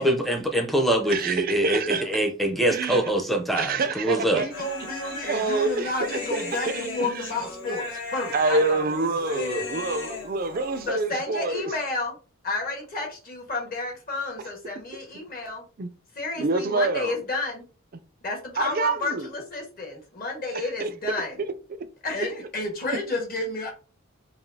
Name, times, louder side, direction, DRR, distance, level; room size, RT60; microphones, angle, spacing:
voice 1, 0.0-4.4, right 1 dB, ahead, 0.6 m, -24 dB
voice 2, 1.1-2.0 2.7-3.1 3.5-4.5 5.0-7.3 7.8-7.9 8.3-11.7 15.8-15.9 16.3-17.1 18.6-19.3 20.8-21.5 21.8-21.9 22.9-23.0, right 3 dB, 45° right, 0.4 m, -27 dB
voice 3, 4.3-8.8 10.9-12.1 12.4-15.6 16.1-17.6 18.2-21.4 22.0-23.7, left 2 dB, 45° left, 1.4 m, -31 dB
Human voice, 4.5-10.9, left 3 dB, 65° left, 1.4 m, -36 dB
4.8 x 2.8 x 2.7 m
head